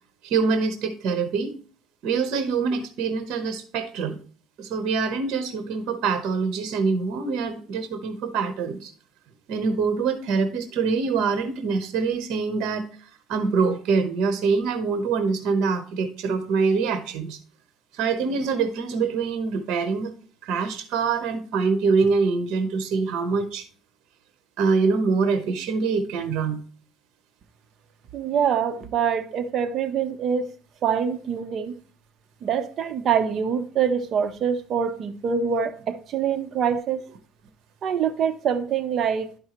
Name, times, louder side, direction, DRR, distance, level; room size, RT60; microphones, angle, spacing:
voice 1, 0.2-1.6 2.0-4.2 4.6-8.9 9.5-12.8 13.3-17.4 17.9-20.1 20.4-23.6 24.6-26.6, right 4 dB, 60° right, 1.0 m, -24 dB
voice 2, 28.1-30.5 30.8-31.7 32.4-37.0 37.8-39.3, right 7 dB, 40° right, 0.7 m, -25 dB
11.5 x 5.4 x 3.0 m
cardioid pair, 150°, 0 cm